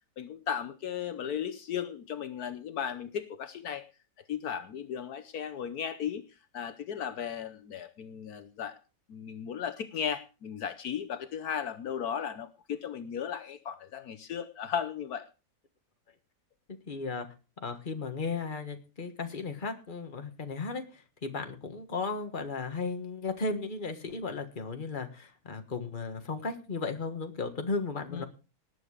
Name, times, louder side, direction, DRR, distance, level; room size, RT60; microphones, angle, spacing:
voice 1, 0.2-3.8 4.3-6.2 6.5-8.8 9.1-15.3 28.1-28.2, left 8 dB, 70° left, 10 dB, 1.4 m, -36 dB
voice 2, 16.9-17.3 17.6-28.3, left 4 dB, 30° left, 6 dB, 1.7 m, -35 dB
19.0 x 7.9 x 4.9 m, 0.32 s
omnidirectional pair, 1.7 m